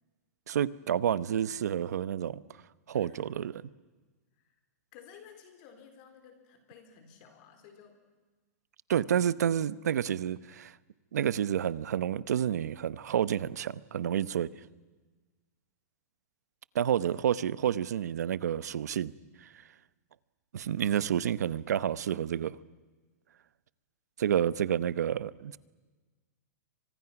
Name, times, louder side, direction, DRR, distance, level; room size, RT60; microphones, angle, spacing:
voice 1, 0.5-2.4 2.9-3.5 8.9-10.7 11.1-14.5 16.7-19.1 19.4-19.5 20.5-22.6 24.2-25.6, right 9 dB, 80° right, 0.9 m, -29 dB
voice 2, 4.9-8.0 16.9-17.3 17.8-17.9, left 7 dB, 30° left, 4.2 m, -55 dB
30.0 x 25.0 x 6.0 m
supercardioid pair, 175°, 9 cm